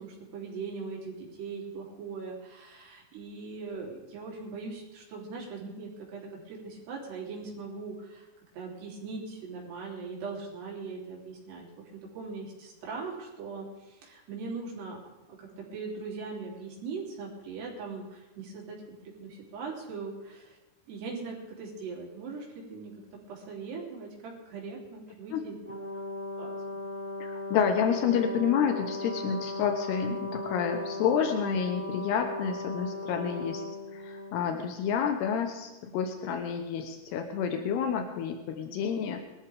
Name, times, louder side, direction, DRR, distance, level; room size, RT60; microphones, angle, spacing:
voice 1, 0.0-8.3 8.5-11.7 11.9-15.0 15.3-20.6 20.9-25.6 26.4-26.5, right 4 dB, 85° right, -2 dB, 5.4 m, -40 dB
Brass instrument, 25.6-34.4, left 2 dB, 5° right, 1.8 m, -37 dB
voice 2, 27.2-33.6 33.9-39.2, left 7 dB, 85° left, 5 dB, 3.0 m, -29 dB
21.5 x 13.5 x 3.5 m, 1.1 s
omnidirectional pair, 4.7 m